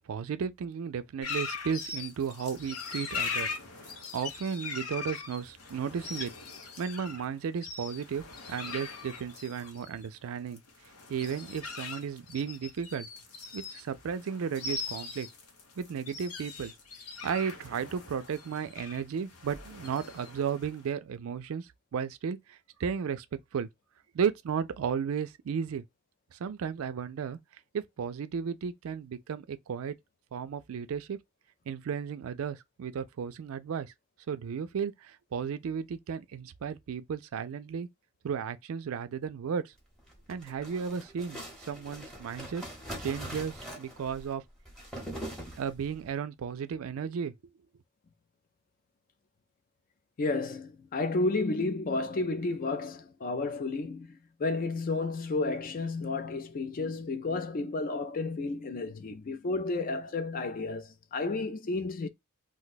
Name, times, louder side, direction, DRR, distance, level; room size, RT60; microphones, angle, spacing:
voice 1, 0.1-3.5 4.1-6.3 6.8-10.6 11.1-13.1 13.5-15.3 15.8-16.7 17.2-23.3 23.5-23.7 24.1-25.8 26.3-27.4 27.7-30.0 30.3-31.2 31.7-33.9 34.3-37.9 38.2-39.7 40.3-42.6 43.0-44.4 45.6-47.3, right 7 dB, 70° right, 0.4 m, -34 dB
sound 1, 1.2-20.9, left 5 dB, 85° left, 0.9 m, -41 dB
sound 2, 40.0-46.0, equal, 5° left, 0.8 m, -42 dB
voice 2, 50.2-62.1, left 3 dB, 40° left, 0.4 m, -32 dB
2.6 x 2.2 x 3.9 m
head